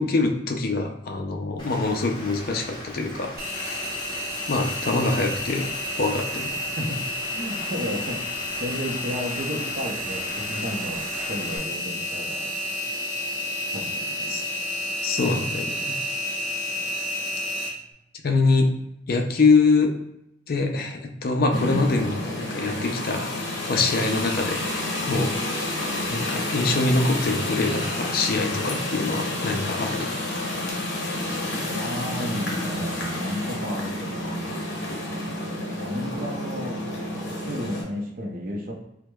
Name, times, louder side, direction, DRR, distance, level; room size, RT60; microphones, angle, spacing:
voice 1, 0.0-3.8 4.5-5.7 6.0-6.5 14.3-14.4 15.0-15.9 18.2-18.7 19.1-19.9 20.5-24.6 25.0-25.4 26.1-30.1, left 3 dB, 50° left, 3 dB, 0.4 m, -24 dB
Rain, 1.6-11.6, equal, 25° left, 0.9 m, -40 dB
Engine, 3.4-17.7, left 1 dB, 15° right, 0.9 m, -30 dB
voice 2, 7.3-8.2 8.6-12.5 13.7-14.3 31.7-34.6 35.8-36.8 37.2-38.7, equal, 50° right, 1 dB, 0.6 m, -32 dB
sound 1, 21.5-37.8, left 1 dB, 65° left, 0.8 m, -29 dB
4.5 x 2.1 x 2.2 m, 0.81 s
head